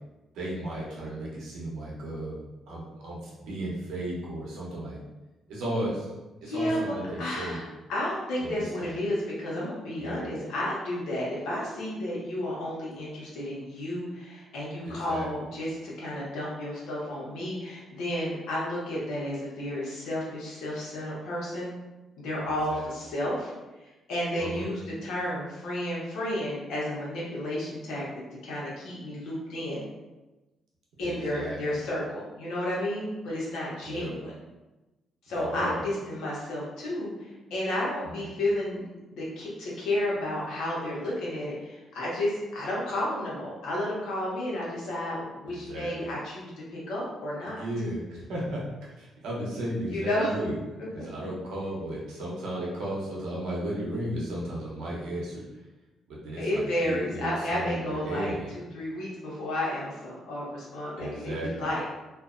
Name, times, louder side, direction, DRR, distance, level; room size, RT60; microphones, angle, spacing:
voice 1, 0.3-2.4 2.7-5.0 5.5-6.1 6.4-7.6 8.4-9.0 10.0-10.3 14.9-15.3 22.4-22.9 24.4-24.7 31.0-31.8 33.9-34.1 35.3-35.8 38.2-38.3 45.4-46.1 47.4-48.6 49.0-50.5 50.9-55.4 56.1-58.5 61.0-61.7, right 1 dB, 85° right, -5 dB, 0.8 m, -35 dB
voice 2, 6.4-7.6 7.9-21.7 22.2-23.5 23.8-28.1 28.4-29.9 31.0-34.3 35.2-47.6 49.9-50.3 51.0-51.1 56.4-61.9, left 1 dB, 85° left, -6 dB, 0.9 m, -32 dB
2.5 x 2.1 x 2.5 m, 1.1 s
cardioid pair, 90°, 0 cm